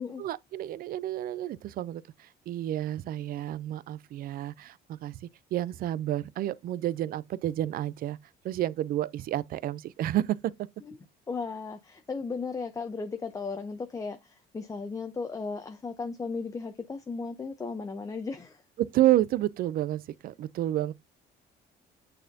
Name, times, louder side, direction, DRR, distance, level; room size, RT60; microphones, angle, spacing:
voice 1, 0.2-8.2 8.4-10.7 18.8-20.9, right 13 dB, 55° right, 0.4 m, -30 dB
voice 2, 11.3-18.6, left 4 dB, 20° left, 0.6 m, -36 dB
8.8 x 4.2 x 2.6 m
cardioid pair, 150°, 18 cm